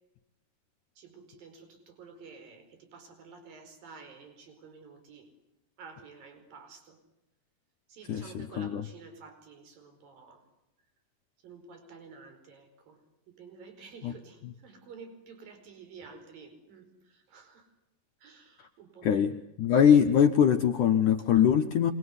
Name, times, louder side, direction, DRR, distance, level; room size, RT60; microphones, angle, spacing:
voice 1, 1.0-5.3 5.8-7.0 7.9-10.4 11.4-13.0 13.3-17.7 18.2-19.4 21.2-21.5, right 5 dB, 60° right, 7 dB, 6.4 m, -51 dB
voice 2, 19.0-19.3 19.6-21.9, left 8 dB, 65° left, 5 dB, 2.1 m, -22 dB
26.5 x 22.0 x 9.7 m, 0.91 s
omnidirectional pair, 4.7 m